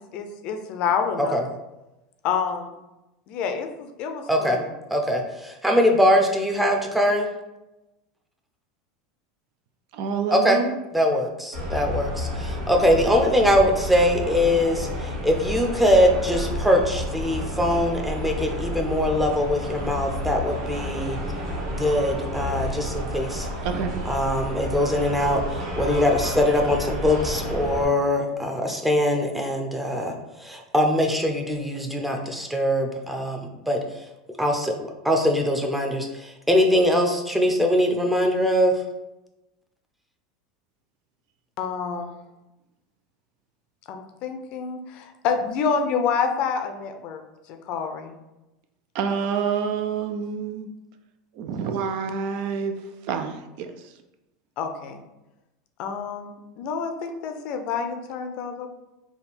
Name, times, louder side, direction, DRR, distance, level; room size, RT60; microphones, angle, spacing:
voice 1, 0.0-1.4 2.2-2.7 3.3-4.7 41.6-42.1 43.9-47.2 47.5-48.1 54.6-55.0 55.8-58.7, left 6 dB, 55° left, 6 dB, 0.5 m, -28 dB
voice 2, 4.3-4.6 4.9-7.3 10.3-10.6 10.9-21.2 21.7-23.5 24.0-25.4 25.8-33.8 34.4-34.7 35.0-38.7, left 1 dB, 5° right, 2 dB, 0.6 m, -22 dB
voice 3, 9.9-10.7 23.6-24.0 48.9-50.7 51.4-53.7, right 6 dB, 60° right, 7 dB, 0.4 m, -28 dB
sound 1, 11.5-27.8, equal, 85° right, 1.4 m, -30 dB
3.5 x 2.3 x 4.1 m, 0.98 s
supercardioid pair, 110°, 2 cm